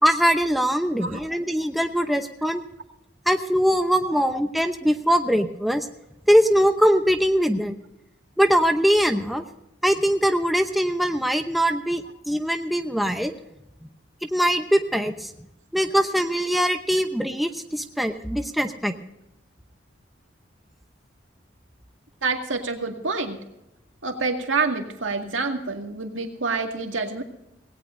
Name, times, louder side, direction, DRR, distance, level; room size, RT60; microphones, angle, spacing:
voice 1, 0.0-2.6 3.3-5.9 6.3-7.7 8.4-9.4 9.8-13.3 14.2-15.3 15.7-18.9, equal, ahead, 6 dB, 0.8 m, -22 dB
voice 2, 22.2-23.4 24.0-27.2, right 4 dB, 85° right, 3 dB, 2.1 m, -27 dB
18.5 x 17.5 x 2.7 m, 0.86 s
head